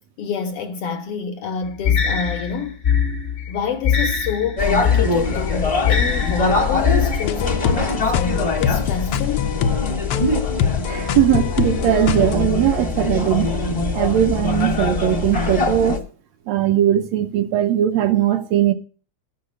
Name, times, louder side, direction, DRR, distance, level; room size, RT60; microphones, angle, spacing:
voice 1, 0.2-2.8 3.5-9.6, left 6 dB, 70° left, 1.5 m, -27 dB
sound 1, 1.8-7.2, left 7 dB, 45° left, 1.0 m, -21 dB
sound 2, 4.6-16.0, left 3 dB, 25° left, 0.7 m, -23 dB
sound 3, 7.2-12.4, left 8 dB, 85° left, 1.2 m, -24 dB
voice 2, 10.9-13.5 13.9-16.0 16.5-18.7, right 11 dB, 75° right, 1.7 m, -19 dB
12.5 x 6.6 x 6.8 m
omnidirectional pair, 3.3 m